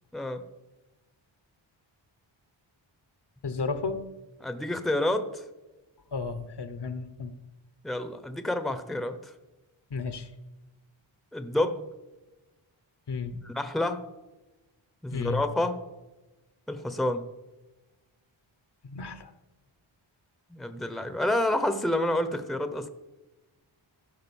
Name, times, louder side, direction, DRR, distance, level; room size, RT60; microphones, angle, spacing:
voice 1, 0.1-0.4 4.4-5.4 7.8-9.3 11.3-11.8 13.4-14.1 15.0-15.8 16.7-17.2 20.5-22.9, left 1 dB, ahead, 9 dB, 0.8 m, -29 dB
voice 2, 3.4-4.1 6.1-7.3 9.9-10.3 13.1-13.4 15.1-15.4 18.9-19.3, left 4 dB, 55° left, 11 dB, 1.1 m, -33 dB
15.0 x 5.2 x 7.1 m, 1.1 s
wide cardioid pair, 120°, 48 cm